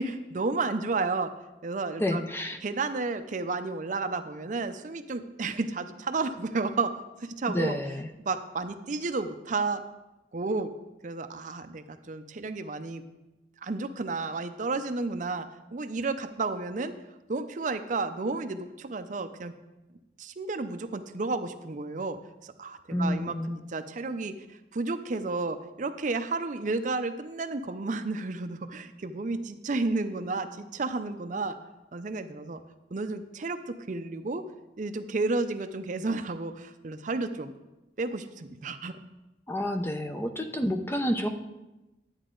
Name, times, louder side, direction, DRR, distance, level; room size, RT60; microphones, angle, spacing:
voice 1, 0.0-1.3 1.6-2.3 2.6-6.9 7.2-7.8 8.2-9.8 10.3-10.7 11.0-13.0 13.6-17.0 17.3-19.5 20.2-22.2 22.4-24.3 24.7-31.6 31.9-32.6 32.9-34.4 34.8-37.5 38.0-39.0, right 3 dB, 45° right, 9 dB, 0.5 m, -32 dB
voice 2, 2.0-2.6 7.5-8.1 22.9-23.6 39.5-41.3, equal, 15° left, 6 dB, 0.6 m, -29 dB
11.5 x 8.9 x 3.8 m, 1.0 s
head